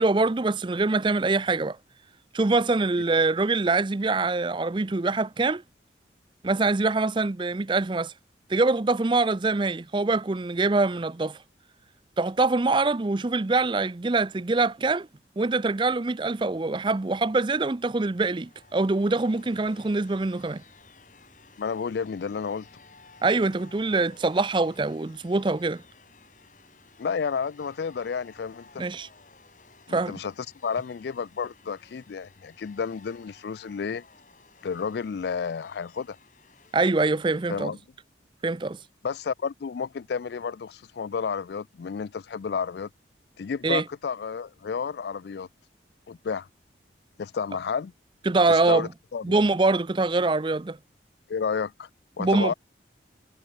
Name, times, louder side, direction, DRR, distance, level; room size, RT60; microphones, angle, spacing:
voice 1, 0.0-1.8 2.3-5.6 6.4-8.1 8.5-11.4 12.2-15.1 15.4-20.6 23.2-25.8 28.8-29.1 29.9-30.2 36.7-37.7 38.4-38.8 43.6-43.8 48.3-48.9 49.2-50.8 52.2-52.5, right 3 dB, 25° right, 0.5 m, -24 dB
sound 1, 17.1-33.4, equal, 5° right, 7.1 m, -68 dB
sound 2, 18.0-37.4, left 4 dB, 45° left, 3.9 m, -55 dB
voice 2, 21.6-22.7 27.0-28.8 29.9-30.3 30.6-34.0 34.6-36.2 37.5-37.8 39.0-42.9 43.4-45.5 46.1-46.5 47.2-47.9 48.5-49.4 51.3-51.9 52.2-52.5, left 6 dB, 65° left, 0.4 m, -31 dB
head